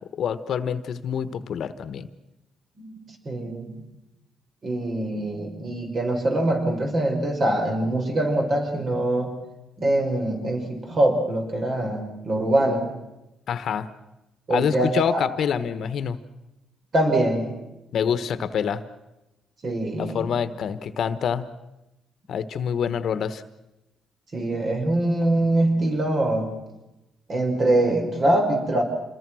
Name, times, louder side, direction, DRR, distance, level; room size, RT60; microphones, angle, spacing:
voice 1, 0.1-2.1 13.5-13.9 14.5-16.2 17.9-18.8 20.0-21.5 22.3-23.4, left 7 dB, 65° left, 13 dB, 1.2 m, -26 dB
voice 2, 2.8-3.8 4.6-9.3 9.8-12.9 14.5-15.2 16.9-17.6 19.6-20.3 24.3-26.5 27.3-28.8, right 1 dB, 45° right, 3 dB, 5.6 m, -23 dB
27.0 x 21.5 x 6.3 m, 0.96 s
cardioid pair, 90°, 0 cm